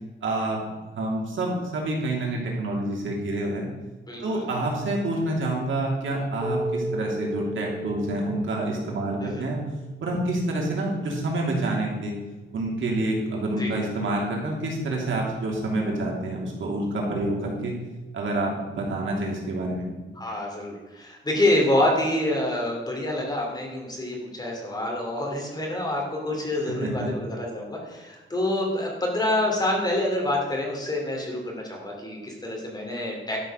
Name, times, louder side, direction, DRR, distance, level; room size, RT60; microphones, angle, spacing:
voice 1, 0.2-0.6 0.9-3.7 4.2-9.6 10.0-12.1 12.5-17.8 18.1-19.9 26.7-27.1, right 2 dB, 75° right, -2 dB, 3.0 m, -27 dB
voice 2, 4.1-4.5 9.2-9.4 13.6-13.7 20.2-33.4, left 1 dB, 20° left, -1 dB, 2.7 m, -27 dB
Keyboard (musical), 6.4-9.6, right 1 dB, 10° right, 4.2 m, -33 dB
12.0 x 6.3 x 6.3 m, 1.2 s
wide cardioid pair, 165°, 20 cm